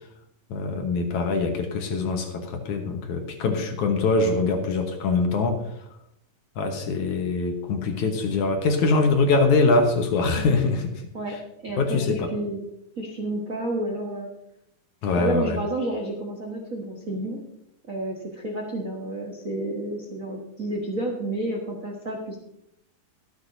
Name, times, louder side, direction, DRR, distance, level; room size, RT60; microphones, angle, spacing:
voice 1, 0.5-5.6 6.6-10.9 11.8-12.2 15.0-15.6, left 3 dB, 65° left, 4 dB, 2.3 m, -23 dB
voice 2, 11.6-12.6 13.0-14.3 15.2-17.4 17.9-22.4, right 1 dB, 75° right, -1 dB, 0.7 m, -30 dB
24.0 x 8.1 x 2.7 m, 0.79 s
omnidirectional pair, 4.1 m